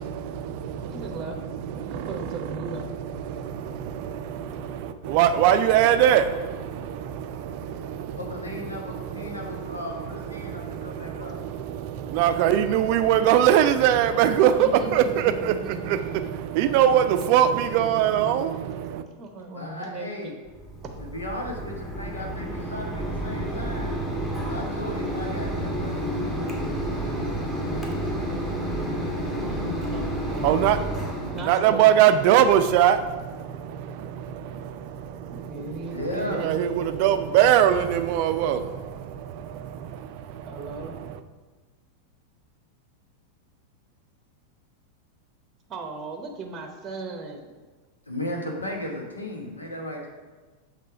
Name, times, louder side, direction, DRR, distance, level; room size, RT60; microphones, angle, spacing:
voice 1, 0.0-19.0 30.3-41.2, right 10 dB, 45° right, 10 dB, 0.4 m, -23 dB
voice 2, 0.9-1.4 1.9-2.9 14.6-15.8 19.1-20.1 20.8-21.0 27.2-30.1 31.3-32.0 35.3-36.5 40.4-41.0 45.7-47.5, right 2 dB, 25° right, 4 dB, 0.7 m, -37 dB
voice 3, 8.1-11.4 19.5-20.3 21.1-24.0 24.4-26.1 35.9-36.4 48.1-50.1, left 1 dB, 80° left, 0 dB, 1.1 m, -35 dB
Mechanisms, 20.5-31.5, right 1 dB, 10° left, 1.2 m, -30 dB
6.6 x 3.2 x 4.8 m, 1.3 s
figure-of-eight pair, 90°, 0 cm